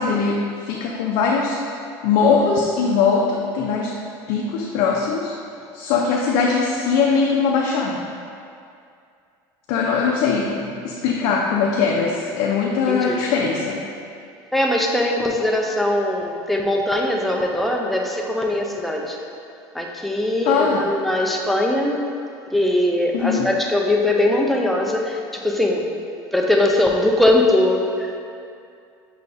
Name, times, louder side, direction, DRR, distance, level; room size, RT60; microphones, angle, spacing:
voice 1, 0.0-1.6 2.0-3.9 4.3-5.3 5.7-8.0 9.7-13.9 20.4-20.9 23.1-23.5, left 5 dB, 75° left, -2 dB, 0.4 m, -21 dB
voice 2, 12.9-13.2 14.5-19.2 19.7-22.0 22.5-25.9 26.3-28.2, left 1 dB, ahead, -1 dB, 0.4 m, -20 dB
5.6 x 3.8 x 2.5 m, 2.4 s
cardioid pair, 130°, 10 cm